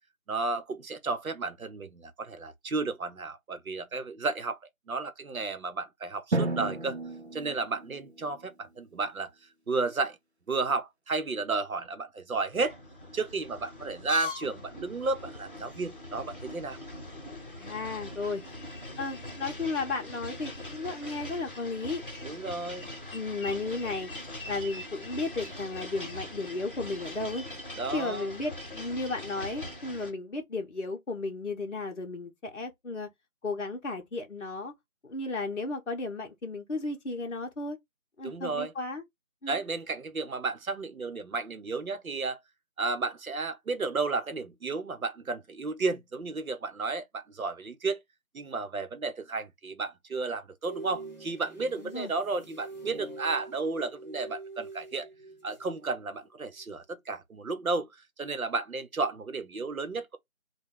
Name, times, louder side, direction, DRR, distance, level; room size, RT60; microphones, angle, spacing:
voice 1, 0.3-4.6 4.9-7.0 7.3-9.3 9.7-10.2 10.5-12.8 13.1-16.8 22.2-22.9 27.8-28.3 38.2-38.7 39.5-42.4 42.8-48.0 48.3-55.1 55.4-60.2, right 3 dB, 75° right, 0.8 m, -33 dB
Drum, 6.3-8.8, right 2 dB, 50° right, 0.5 m, -33 dB
sound 1, 12.5-30.1, left 2 dB, 40° left, 0.9 m, -42 dB
voice 2, 17.6-18.4 19.0-22.0 23.1-24.1 24.5-27.4 27.9-33.1 33.4-34.7 35.0-37.8 38.2-39.0 39.4-39.6 51.8-52.1, left 3 dB, 60° left, 0.7 m, -34 dB
sound 2, 50.7-55.8 56.1-56.4, right 3 dB, 30° right, 0.8 m, -45 dB
3.1 x 2.2 x 3.5 m
figure-of-eight pair, 170°, 42 cm